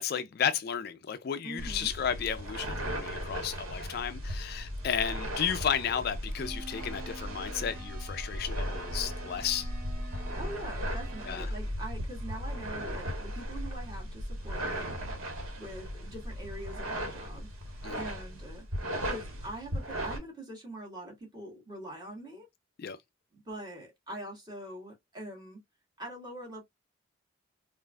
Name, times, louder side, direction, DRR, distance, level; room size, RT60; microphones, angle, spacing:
voice 1, 0.0-9.7 11.3-11.5 17.8-18.0 22.8-23.0, left 8 dB, 50° left, 0.3 m, -33 dB
voice 2, 1.4-1.9 10.3-14.9 15.5-18.6 19.0-22.5 23.3-25.6 26.0-26.6, right 1 dB, 20° right, 1.7 m, -43 dB
sound 1, 1.6-20.2, equal, 90° right, 1.3 m, -37 dB
sound 2, 6.4-11.4, right 2 dB, 40° right, 0.8 m, -48 dB
4.6 x 2.5 x 2.2 m
head